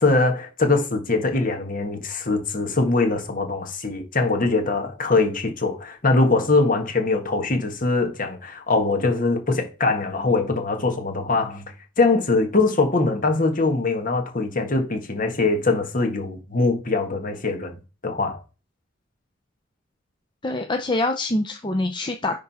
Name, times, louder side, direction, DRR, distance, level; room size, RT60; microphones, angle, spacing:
voice 1, 0.0-11.7 12.0-17.7 18.0-18.4, left 3 dB, 45° left, 1.7 m, -22 dB
voice 2, 20.4-22.4, left 2 dB, 25° left, 0.6 m, -25 dB
10.5 x 3.7 x 4.2 m
head